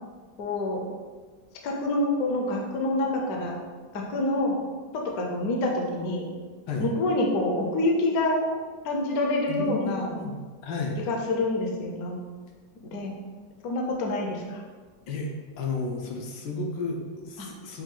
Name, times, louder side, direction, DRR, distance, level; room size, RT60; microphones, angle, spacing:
voice 1, 0.4-0.8 1.6-3.6 3.9-4.6 4.9-6.3 6.8-8.5 8.8-10.2 11.1-12.2 12.8-13.1 13.6-14.6 17.4-17.5, left 2 dB, 65° left, 0 dB, 1.0 m, -27 dB
voice 2, 9.5-10.3 10.6-11.0 15.1-15.3 15.6-17.8, left 3 dB, 80° left, 0 dB, 1.4 m, -32 dB
6.0 x 2.3 x 3.7 m, 1.5 s
omnidirectional pair, 2.0 m